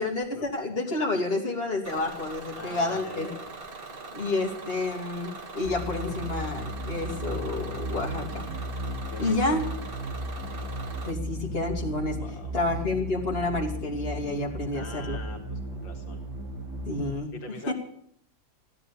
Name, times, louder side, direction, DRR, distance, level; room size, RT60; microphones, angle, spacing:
voice 1, 0.0-3.3 4.1-8.5 9.2-9.6 11.0-12.2 12.5-15.2 16.9-17.3 17.7-17.8, left 2 dB, 30° left, -2 dB, 3.1 m, -29 dB
Bus / Engine, 1.8-11.1, right 3 dB, 30° right, 1.7 m, -41 dB
voice 2, 2.6-3.5 9.1-9.6 12.2-12.5 14.7-16.2 17.3-17.7, left 1 dB, 80° left, 3 dB, 2.4 m, -42 dB
sound 1, 5.6-17.1, right 1 dB, 60° right, 3.2 m, -35 dB
16.0 x 9.9 x 8.5 m, 0.66 s
omnidirectional pair, 2.0 m